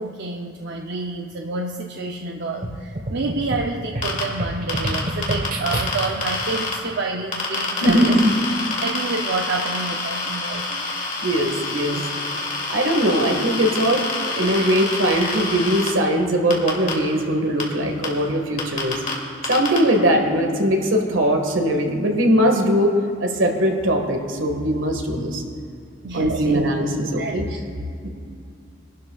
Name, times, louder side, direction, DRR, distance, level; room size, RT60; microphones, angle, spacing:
voice 1, 0.0-8.2 8.8-11.1 11.9-12.1 26.0-26.6 27.2-27.6, right 3 dB, 60° right, 1 dB, 0.6 m, -29 dB
sound 1, 2.6-6.3, right 1 dB, 45° right, 1.2 m, -29 dB
sound 2, 4.0-4.2 4.7-6.7 7.3-15.9 16.5-16.9 17.6-17.7 18.0-18.1 18.6-19.1 19.4-19.8, left 3 dB, 45° left, 2.4 m, -27 dB
voice 2, 7.8-8.3 10.7-10.8 11.2-12.0 12.7-19.0 19.5-25.4 26.1-27.5 28.0-28.1, equal, 85° right, 2 dB, 1.7 m, -20 dB
25.0 x 12.0 x 2.4 m, 2.4 s
head